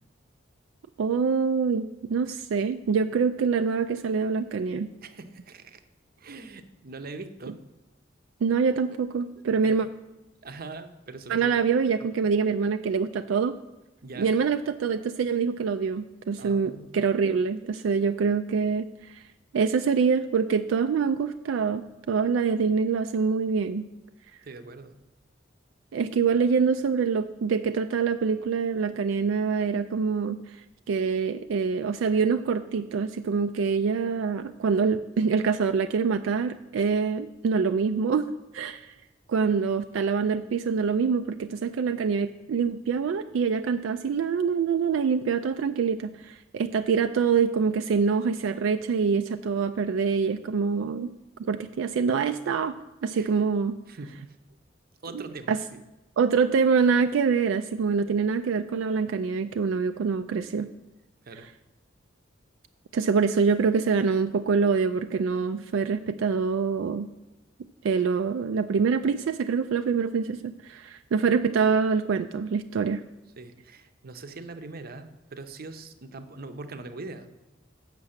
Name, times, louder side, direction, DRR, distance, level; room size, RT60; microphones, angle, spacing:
voice 1, 1.0-4.9 8.4-9.9 11.3-13.6 14.2-19.2 19.5-21.8 22.1-23.9 25.9-30.6 30.9-38.9 39.3-51.1 51.4-52.8 53.0-53.8 55.1-55.6 56.2-60.7 62.9-67.1 67.8-73.0, right 5 dB, 80° right, 8 dB, 0.3 m, -25 dB
voice 2, 5.0-5.8 6.2-7.6 9.6-9.9 10.4-11.6 14.0-14.3 16.4-16.9 24.4-24.9 53.1-53.3 53.9-54.1 55.0-55.8 61.3-61.5 73.4-77.3, right 3 dB, 50° right, 9 dB, 0.7 m, -42 dB
7.6 x 5.9 x 7.2 m, 1.0 s
head